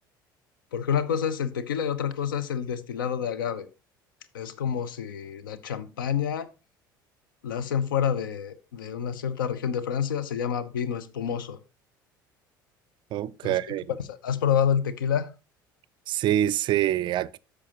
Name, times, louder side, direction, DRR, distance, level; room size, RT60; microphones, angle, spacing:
voice 1, 0.7-3.7 4.3-6.5 7.4-11.6 13.4-13.6 14.1-15.3, left 8 dB, 75° left, 0.7 m, -28 dB
voice 2, 13.1-13.9 16.1-17.4, right 12 dB, 45° right, 0.4 m, -25 dB
13.0 x 5.0 x 2.9 m
figure-of-eight pair, 60°, 11 cm